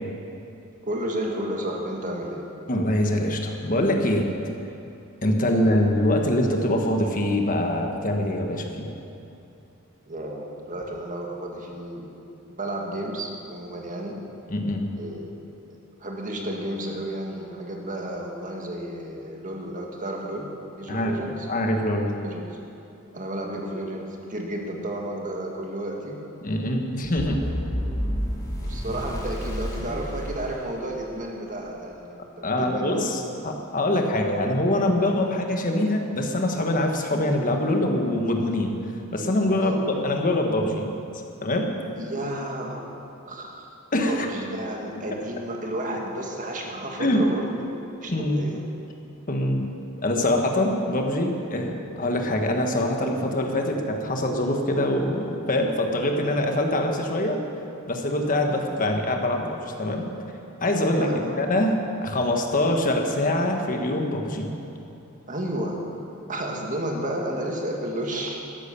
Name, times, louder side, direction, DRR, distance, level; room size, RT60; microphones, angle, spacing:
voice 1, 0.9-2.5 5.5-5.9 10.1-12.2 12.5-14.2 14.9-15.4 16.0-21.5 22.2-22.4 23.1-26.2 27.3-27.5 27.8-28.0 28.6-33.5 39.6-39.8 42.0-42.9 43.3-43.7 44.1-48.6 60.9-61.5 62.3-62.4 62.6-62.7 65.3-65.8 66.3-68.4, right 1 dB, 35° right, 0 dB, 1.9 m, -32 dB
voice 2, 2.7-4.3 5.2-8.9 14.5-14.8 20.9-21.2 21.5-22.1 26.4-27.5 32.4-38.8 39.1-39.8 40.0-40.9 41.4-41.7 43.9-44.3 47.0-47.3 48.1-48.4 49.3-49.6 50.0-57.4 57.9-60.1 60.6-64.5, left 1 dB, 40° left, 3 dB, 1.4 m, -24 dB
sound 1, 27.2-31.3, equal, 20° left, 2.0 m, -30 dB
13.0 x 11.0 x 6.9 m, 2.8 s
head